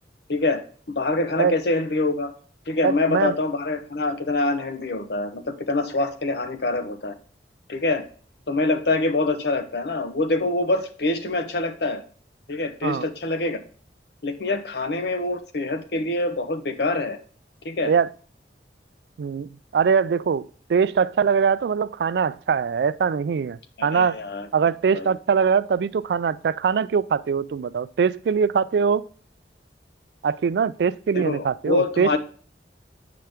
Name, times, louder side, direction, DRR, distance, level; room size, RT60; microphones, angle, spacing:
voice 1, 0.3-0.6 0.9-2.3 2.7-7.2 7.7-8.0 8.5-12.0 12.5-13.6 14.2-17.2 17.6-17.9 23.8-24.5 24.9-25.1 31.1-32.2, left 2 dB, 65° left, 0.8 m, -25 dB
voice 2, 2.8-3.4 12.8-13.0 17.8-18.1 19.2-24.2 24.5-29.0 30.2-32.1, right 6 dB, 65° right, 0.3 m, -22 dB
7.7 x 5.7 x 3.5 m
head